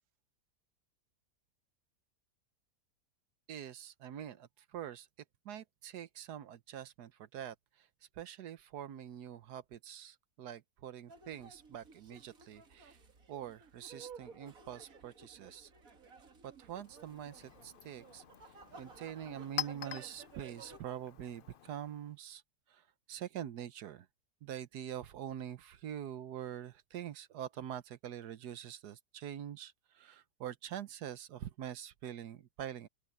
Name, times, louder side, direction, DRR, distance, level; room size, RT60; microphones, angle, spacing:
voice 1, 3.5-5.1 5.4-7.9 8.1-13.0 13.3-15.7 16.4-18.2 18.8-22.4 22.7-24.1 24.4-32.9, right 10 dB, 75° right, 1.4 m, -45 dB
sound 1, 11.1-20.8, right 5 dB, 55° right, 2.4 m, -55 dB
Chink clink, 16.6-22.2, left 9 dB, 85° left, 0.4 m, -46 dB
open air
omnidirectional pair, 1.8 m